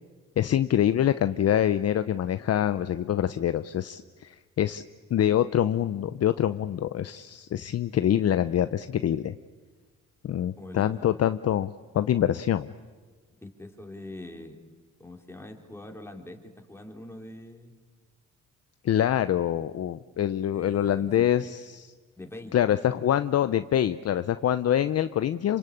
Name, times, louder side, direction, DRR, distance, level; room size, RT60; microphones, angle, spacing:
voice 1, 0.4-4.8 5.1-9.3 10.2-12.7 18.8-21.9 22.5-25.6, left 10 dB, 55° left, 12 dB, 0.8 m, -25 dB
voice 2, 10.6-11.1 13.3-14.6 15.0-17.8 20.5-21.3 22.2-22.6, left 1 dB, 10° left, 2 dB, 3.6 m, -43 dB
27.0 x 25.5 x 8.7 m, 1.5 s
cardioid pair, 90°, 30 cm